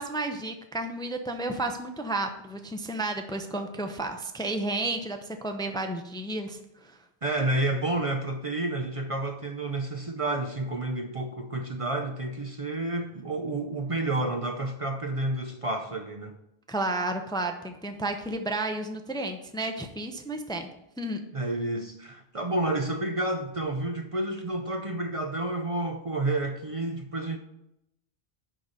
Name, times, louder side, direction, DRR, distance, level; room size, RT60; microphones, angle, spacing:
voice 1, 0.0-7.0 16.7-20.7 21.0-21.2, right 2 dB, 5° left, 0.6 m, -32 dB
voice 2, 7.2-16.4 21.3-27.4, right 2 dB, 35° right, 0.7 m, -30 dB
11.0 x 4.0 x 6.5 m
omnidirectional pair, 1.1 m